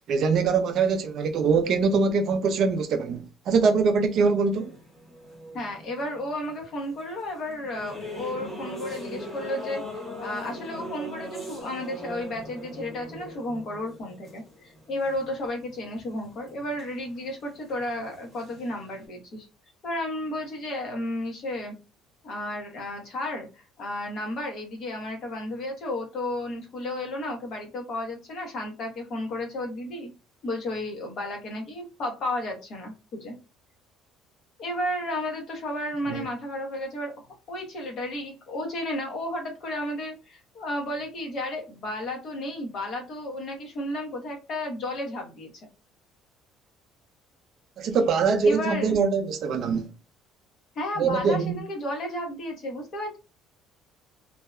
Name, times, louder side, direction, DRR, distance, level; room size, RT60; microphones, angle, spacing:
voice 1, 0.1-4.7 36.1-36.2 47.8-49.9 51.0-51.6, right 5 dB, 45° right, 0.3 m, -23 dB
sound 1, 4.5-7.0 7.4-15.7 16.0-17.3 17.5-19.0, equal, 20° left, 1.1 m, -40 dB
voice 2, 5.5-19.5 19.8-21.7 22.2-30.1 30.4-33.3 34.6-37.1 37.5-45.5 48.4-49.0 50.8-53.2, left 1 dB, 40° left, 0.8 m, -33 dB
2.6 x 2.1 x 2.3 m
cardioid pair, 175°, 0 cm